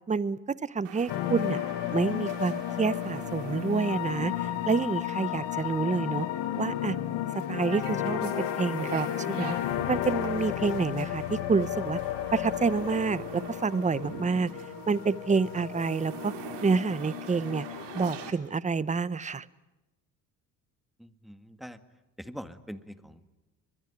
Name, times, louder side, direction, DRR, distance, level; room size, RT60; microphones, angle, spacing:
voice 1, 0.1-1.6 1.9-6.3 6.6-7.0 7.3-9.6 9.9-12.0 12.3-14.5 14.9-16.3 16.6-17.7 17.9-19.5, right 4 dB, 20° right, 18 dB, 0.8 m, -28 dB
sound 1, 0.9-18.3, right 8 dB, 85° right, 3.2 m, -44 dB
sound 2, 1.1-18.3, left 13 dB, 80° left, 1.5 m, -33 dB
voice 2, 21.0-21.8 22.2-23.4, equal, ahead, 10 dB, 1.8 m, -43 dB
24.5 x 22.0 x 9.9 m, 1.1 s
supercardioid pair, 85°, 41 cm